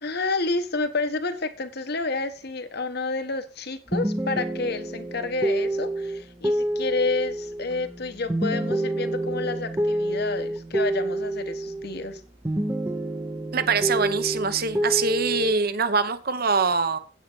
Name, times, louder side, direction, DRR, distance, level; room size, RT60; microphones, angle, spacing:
voice 1, 0.0-12.2, left 3 dB, 55° left, 9 dB, 1.2 m, -29 dB
sound 1, 3.9-12.2 12.5-15.5, right 1 dB, 15° right, 0.6 m, -28 dB
voice 2, 13.5-17.0, right 4 dB, 50° right, 12 dB, 0.9 m, -23 dB
9.3 x 8.7 x 4.5 m, 0.36 s
head